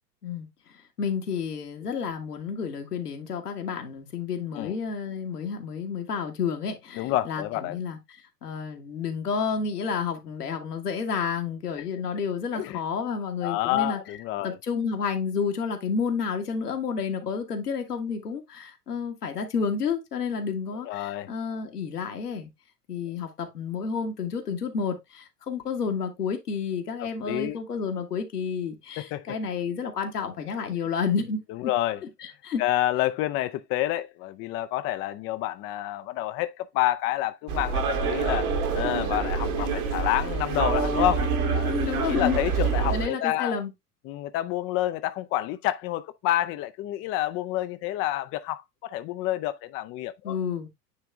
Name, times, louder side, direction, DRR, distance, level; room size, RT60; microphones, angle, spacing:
voice 1, 1.0-8.0 8.4-14.0 14.4-22.5 22.9-31.4 32.2-32.6 41.6-42.4 42.9-43.7 50.2-50.7, left 6 dB, 80° left, 1.8 m, -30 dB
voice 2, 7.0-7.8 12.5-12.8 13.4-14.6 20.8-21.3 27.0-27.6 29.0-29.4 31.5-32.0 32.6-41.3 41.5-41.7 42.1-43.6 44.0-50.4, left 14 dB, 30° left, 0.5 m, -28 dB
sound 1, 37.5-43.1, right 5 dB, 65° right, 2.1 m, -26 dB
9.5 x 3.4 x 3.4 m
figure-of-eight pair, 90°, 46 cm